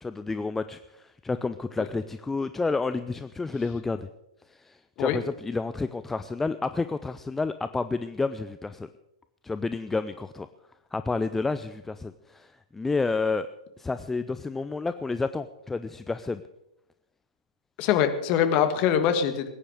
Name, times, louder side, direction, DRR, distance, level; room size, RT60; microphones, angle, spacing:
voice 1, 0.0-4.1 4.6-8.9 9.4-10.5 10.9-13.5 13.8-16.4, left 3 dB, 10° left, 12 dB, 0.5 m, -30 dB
voice 2, 17.8-19.5, left 9 dB, 35° left, 9 dB, 1.7 m, -23 dB
20.0 x 10.0 x 6.4 m, 0.84 s
figure-of-eight pair, 105°, 3 cm